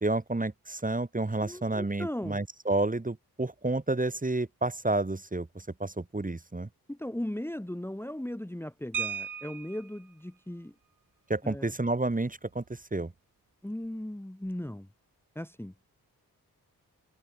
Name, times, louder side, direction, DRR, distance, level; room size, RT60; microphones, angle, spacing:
voice 1, 0.0-6.7 11.3-13.1, right 2 dB, 20° right, 2.2 m, -30 dB
voice 2, 1.4-2.4 6.9-10.7 11.4-11.7 13.6-14.9 15.3-15.7, left 1 dB, 5° left, 1.7 m, -37 dB
sound 1, 8.9-10.0 11.5-11.6 11.9-12.1 12.5-12.8, right 7 dB, 55° right, 1.3 m, -36 dB
cardioid pair, 50°, 38 cm